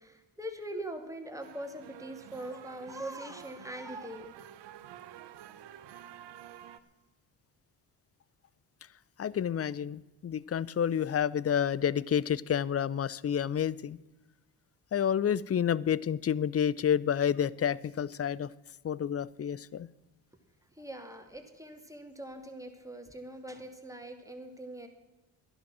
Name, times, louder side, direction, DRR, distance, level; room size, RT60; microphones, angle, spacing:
voice 1, 0.0-4.3 20.8-24.9, right 1 dB, 5° right, 2.5 m, -42 dB
sound 1, 1.4-6.8, right 11 dB, 75° right, 1.0 m, -50 dB
voice 2, 9.2-14.0 14.9-18.5 18.8-19.9, left 8 dB, 35° left, 0.6 m, -29 dB
12.0 x 11.0 x 6.2 m
supercardioid pair, 50°, 43 cm